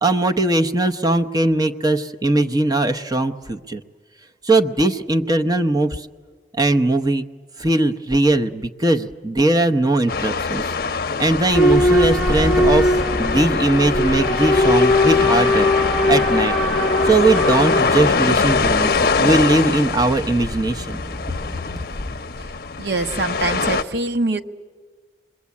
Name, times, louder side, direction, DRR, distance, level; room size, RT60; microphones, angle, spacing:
voice 1, 0.0-3.8 4.4-6.1 6.6-7.3 7.6-10.7 11.2-15.7 16.1-16.5 17.0-18.9 19.2-21.0, right 2 dB, 20° right, 6 dB, 0.8 m, -19 dB
sound 1, 10.1-23.8, left 4 dB, 55° left, 0.7 m, -23 dB
Boat Water vehicle / Alarm, 11.5-22.2, left 1 dB, ahead, 1.2 m, -21 dB
voice 2, 22.8-24.4, right 2 dB, 70° right, 6 dB, 1.1 m, -23 dB
27.0 x 22.0 x 8.5 m, 1.5 s
head